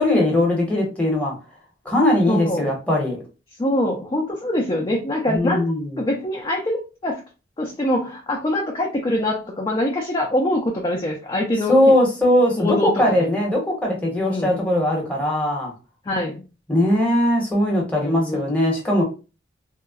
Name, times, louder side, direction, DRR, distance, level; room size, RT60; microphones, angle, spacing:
voice 1, 0.0-1.3 1.8-3.2 5.3-6.0 11.7-15.7 16.7-19.0, left 1 dB, 10° left, -2 dB, 0.8 m, -20 dB
voice 2, 2.3-2.7 3.6-5.6 6.0-7.2 7.6-11.8 12.6-13.1 14.3-14.6 16.0-16.5 18.0-18.5, left 1 dB, 25° left, -1 dB, 0.4 m, -24 dB
3.5 x 2.0 x 2.3 m, 0.32 s
head